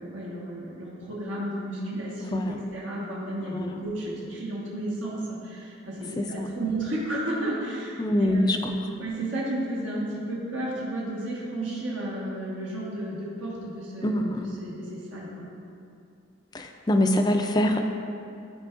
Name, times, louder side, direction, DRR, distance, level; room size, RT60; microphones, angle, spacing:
voice 1, 0.0-8.6 9.0-15.5, right 1 dB, 75° right, -6 dB, 1.4 m, -33 dB
voice 2, 8.0-8.8 14.0-14.5 16.5-17.8, left 1 dB, 20° left, 5 dB, 0.3 m, -24 dB
12.5 x 4.4 x 2.5 m, 2.5 s
head